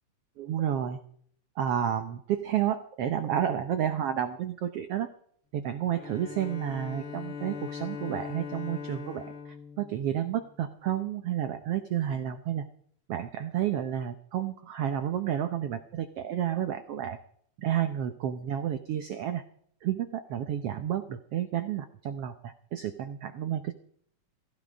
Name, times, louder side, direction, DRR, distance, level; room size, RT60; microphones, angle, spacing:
voice 1, 0.4-1.0 1.6-5.1 5.5-12.6 13.1-17.2 17.6-19.4 19.8-23.7, right 10 dB, 85° right, 8 dB, 1.3 m, -31 dB
Bowed string instrument, 5.9-10.7, left 6 dB, 60° left, 1.4 m, -40 dB
15.5 x 15.0 x 5.1 m, 0.64 s
omnidirectional pair, 3.9 m